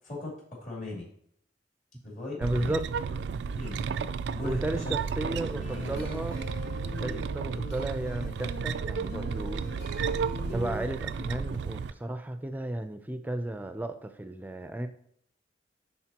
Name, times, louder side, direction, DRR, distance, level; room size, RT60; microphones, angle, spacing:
voice 1, 0.0-1.1 2.0-2.8 3.5-3.8 4.3-4.9 5.3-6.2 7.0-7.3, left 2 dB, 45° left, -5 dB, 3.0 m, -39 dB
voice 2, 2.4-2.9 4.4-6.4 7.0-9.6 10.5-14.9, right 1 dB, 10° right, 8 dB, 0.5 m, -34 dB
sound 1, 2.4-11.9, right 5 dB, 70° right, 0.3 m, -33 dB
sound 2, 5.2-10.8, equal, 70° left, 2.3 m, -42 dB
10.0 x 4.1 x 2.9 m, 0.67 s
head